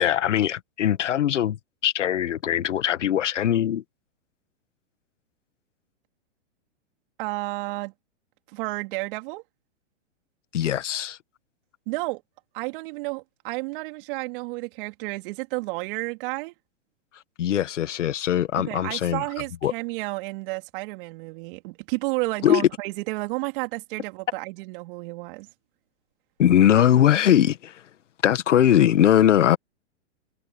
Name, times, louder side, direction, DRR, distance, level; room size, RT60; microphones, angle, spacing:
voice 1, 0.0-3.8 10.5-11.2 17.4-19.2 19.6-19.7 22.4-22.7 26.4-27.9 28.2-29.6, left 10 dB, 80° left, 1.8 m, -21 dB
voice 2, 7.2-7.9 8.5-9.4 11.9-12.2 12.5-16.5 18.7-25.5, right 25 dB, 45° right, 3.5 m, -31 dB
hypercardioid pair, 135°, 36 cm